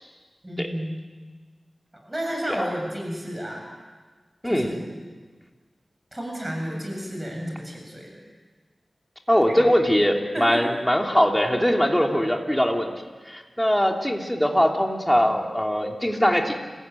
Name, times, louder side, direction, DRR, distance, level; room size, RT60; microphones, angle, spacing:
voice 1, 0.4-1.0 1.9-3.6 4.4-5.0 6.1-8.2 9.5-9.6 10.3-10.7 11.6-11.7, equal, 20° right, 0 dB, 7.7 m, -32 dB
voice 2, 4.4-4.8 9.3-12.9 13.3-16.6, equal, 5° left, 2 dB, 3.1 m, -21 dB
29.5 x 15.5 x 9.2 m, 1.4 s
wide cardioid pair, 65°, 0 cm